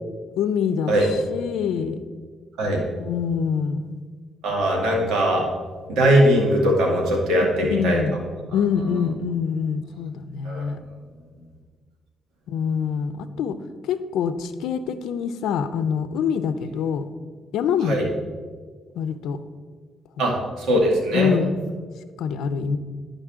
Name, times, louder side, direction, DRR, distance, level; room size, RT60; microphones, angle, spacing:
voice 1, 0.4-2.0 3.0-4.0 7.7-8.2 8.5-10.8 12.5-13.6 13.8-17.1 17.5-18.0 19.0-19.4 20.2-20.4 21.1-21.6 22.2-22.8, left 7 dB, 85° left, 11 dB, 0.5 m, -25 dB
voice 2, 4.4-5.4 5.9-8.0 10.5-10.6 17.9-18.1 20.2-21.3, right 1 dB, 85° right, -1 dB, 1.9 m, -20 dB
11.5 x 5.2 x 3.6 m, 1.5 s
cardioid pair, 90°, 0 cm